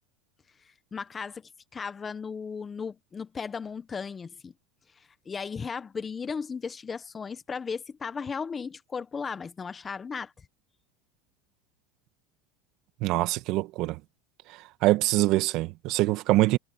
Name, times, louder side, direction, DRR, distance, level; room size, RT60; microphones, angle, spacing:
voice 1, 0.9-4.5 5.0-10.3, left 5 dB, 20° left, 1.2 m, -36 dB
voice 2, 13.0-14.0 14.5-16.6, right 18 dB, 55° right, 1.9 m, -24 dB
supercardioid pair, 115°, 0 cm